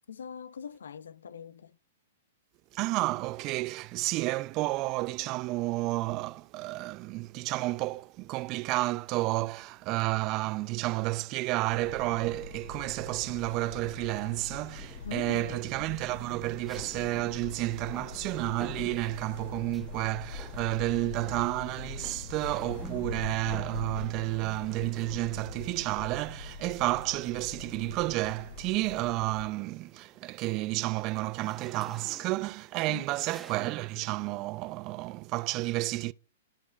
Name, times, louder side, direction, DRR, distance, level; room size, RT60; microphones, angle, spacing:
voice 1, 0.1-1.8 15.0-15.7 32.9-33.1, left 7 dB, 85° left, 0.4 m, -41 dB
voice 2, 2.7-36.1, right 20 dB, 35° right, 0.3 m, -31 dB
sound 1, 11.7-29.4, left 4 dB, 65° left, 2.5 m, -42 dB
sound 2, 14.8-15.3 16.6-20.0 20.3-20.9 21.1-25.6 26.7-28.1 28.6-28.9 29.2-34.0, right 3 dB, 10° right, 0.8 m, -50 dB
13.0 x 5.1 x 2.3 m
hypercardioid pair, 135°, 0 cm